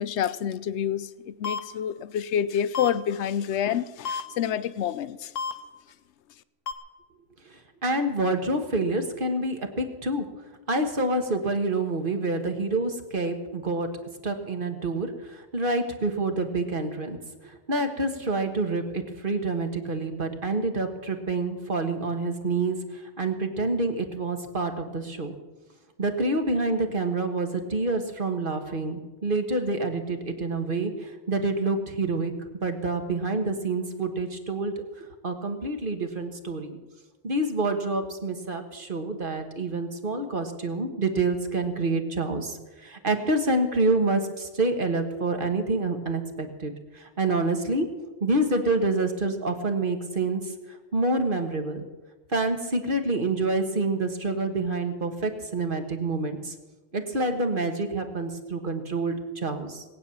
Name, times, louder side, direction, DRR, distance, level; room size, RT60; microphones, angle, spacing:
voice 1, 0.0-5.3, left 9 dB, 70° left, 16 dB, 0.9 m, -28 dB
sound 1, 1.4-1.6 2.7-2.9 4.1-4.2 5.4-5.5 6.7-6.8, left 5 dB, 90° left, 1.5 m, -29 dB
voice 2, 7.5-10.3 10.7-13.9 14.2-17.2 17.4-25.4 26.0-36.8 37.2-47.9 48.2-50.5 50.9-51.8 52.3-56.6 56.9-59.8, right 2 dB, 45° right, 6 dB, 1.7 m, -27 dB
20.0 x 9.3 x 7.1 m, 1.2 s
omnidirectional pair, 1.3 m